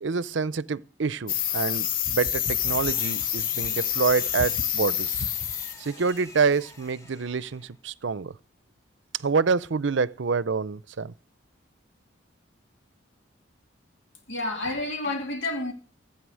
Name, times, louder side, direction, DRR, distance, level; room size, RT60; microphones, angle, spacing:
voice 1, 0.0-5.3 5.8-8.3 9.2-11.1, right 5 dB, 70° right, 0.6 m, -27 dB
sound 1, 1.3-5.8 6.1-6.4, left 9 dB, 45° left, 0.7 m, -27 dB
Engine, 2.1-7.8, left 1 dB, 15° left, 2.0 m, -48 dB
voice 2, 14.3-15.7, left 2 dB, 75° left, 2.4 m, -29 dB
16.0 x 8.7 x 6.4 m
head